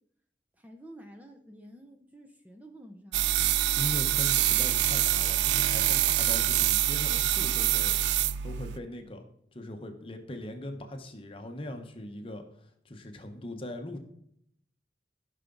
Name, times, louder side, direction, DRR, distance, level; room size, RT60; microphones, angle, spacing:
voice 1, 0.6-3.5, right 1 dB, 10° right, 3 dB, 0.6 m, -50 dB
sound 1, 3.1-8.8, right 13 dB, 70° right, 0.3 m, -25 dB
voice 2, 3.6-7.9 8.4-9.3 9.5-14.0, left 1 dB, 30° left, 5 dB, 1.0 m, -40 dB
15.0 x 5.8 x 3.9 m, 0.72 s
head